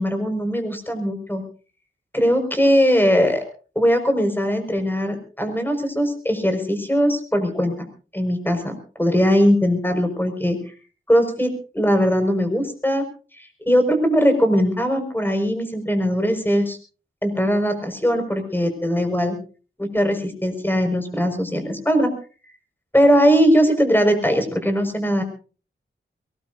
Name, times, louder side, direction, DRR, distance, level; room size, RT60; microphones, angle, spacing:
voice 1, 0.0-1.4 2.1-3.4 3.8-7.9 8.1-10.6 11.1-13.0 13.4-16.8 17.2-19.4 19.8-22.1 22.9-25.2, equal, 10° left, 6 dB, 5.4 m, -20 dB
22.5 x 19.5 x 2.7 m, 0.36 s
wide cardioid pair, 60°, 21 cm